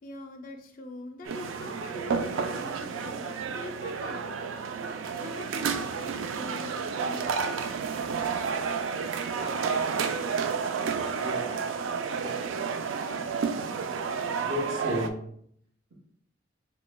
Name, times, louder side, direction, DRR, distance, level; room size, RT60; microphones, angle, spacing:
voice 1, 0.0-4.8 5.2-8.2, left 2 dB, 45° left, 4 dB, 0.4 m, -43 dB
sound 1, 1.3-15.1, right 5 dB, 90° right, 0.3 m, -31 dB
voice 2, 11.2-11.6 12.1-12.4 14.4-15.2, equal, 50° right, -2 dB, 1.1 m, -33 dB
5.9 x 2.2 x 2.2 m, 0.67 s
head